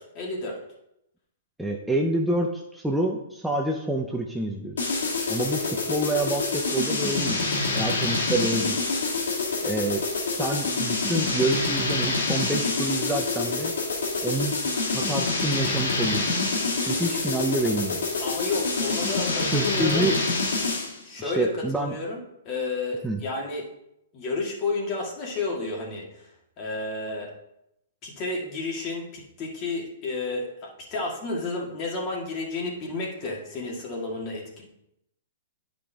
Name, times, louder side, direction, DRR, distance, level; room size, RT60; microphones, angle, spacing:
voice 1, 0.1-0.6 18.2-20.1 21.0-21.5 21.7-23.7 24.1-26.1 26.6-27.3 28.0-34.7, left 3 dB, 35° left, -1 dB, 2.1 m, -31 dB
voice 2, 1.6-4.8 5.3-7.4 7.7-8.8 9.6-13.7 14.2-14.6 14.9-16.5 16.8-18.1 19.4-20.2 21.2-21.9 23.0-23.2, right 2 dB, 5° right, 0 dB, 0.6 m, -28 dB
sound 1, 4.8-21.0, left 3 dB, 85° left, 1.7 m, -26 dB
9.8 x 5.1 x 3.5 m, 0.82 s
hypercardioid pair, 140°, 0 cm